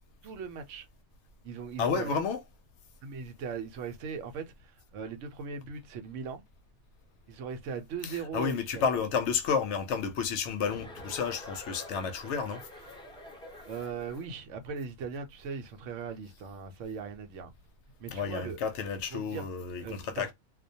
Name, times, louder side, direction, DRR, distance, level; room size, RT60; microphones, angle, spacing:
voice 1, 0.2-0.9 1.4-2.1 3.0-6.4 7.3-8.8 13.7-17.5 18.0-18.6 19.1-19.5 19.8-20.3, right 5 dB, 85° right, 0.9 m, -39 dB
voice 2, 1.8-2.4 8.0-12.7 18.1-20.3, left 6 dB, 75° left, 0.8 m, -31 dB
Chuckle chortle, 10.6-14.3, left 1 dB, 5° left, 0.4 m, -47 dB
2.3 x 2.2 x 2.6 m
omnidirectional pair, 1.2 m